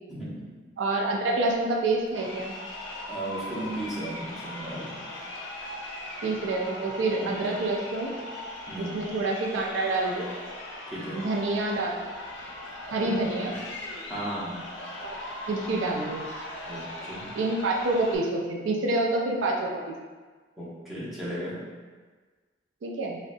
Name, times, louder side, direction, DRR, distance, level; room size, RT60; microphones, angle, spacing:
voice 1, 0.1-0.4 3.1-5.0 7.2-7.3 8.7-9.1 10.9-11.2 13.0-13.5 14.1-14.7 16.7-17.3 20.6-21.5, right 1 dB, ahead, -10 dB, 0.8 m, -36 dB
voice 2, 0.8-2.5 6.2-8.1 8.8-10.3 11.1-12.0 12.9-13.5 15.0-15.2 15.5-16.2 17.3-19.9 22.8-23.2, right 2 dB, 85° right, -1 dB, 0.4 m, -27 dB
Crowd, 2.1-18.2, left 1 dB, 70° left, 0.5 m, -39 dB
3.7 x 2.1 x 2.6 m, 1.4 s
head